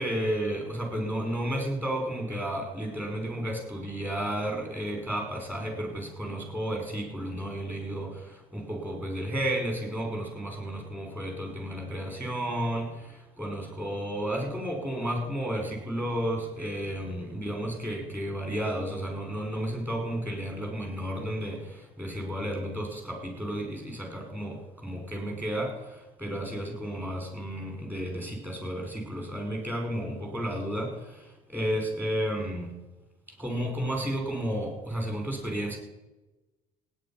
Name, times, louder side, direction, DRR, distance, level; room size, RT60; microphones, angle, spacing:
voice 1, 0.0-32.7 33.4-35.8, right 1 dB, 10° right, 2 dB, 5.4 m, -32 dB
17.0 x 9.8 x 5.9 m, 1.1 s
cardioid pair, 105°, 17 cm